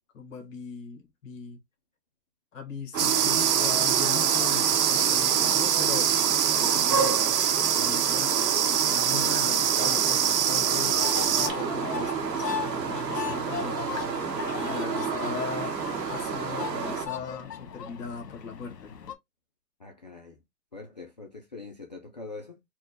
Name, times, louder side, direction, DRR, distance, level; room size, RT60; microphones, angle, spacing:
voice 1, 0.1-1.6 2.5-6.1 6.5-7.2 7.7-8.4 8.9-11.1 11.3-14.2 14.5-15.8 16.1-18.9, left 5 dB, 50° left, 1.4 m, -39 dB
sound 1, 2.9-17.1, right 6 dB, 80° right, 1.3 m, -30 dB
sound 2, 3.0-11.5, right 9 dB, 45° right, 0.6 m, -24 dB
sound 3, 10.7-19.1, left 8 dB, 70° left, 1.3 m, -37 dB
voice 2, 19.8-20.4 20.7-22.6, left 3 dB, 30° left, 0.4 m, -43 dB
4.4 x 2.2 x 3.9 m
hypercardioid pair, 150°, 49 cm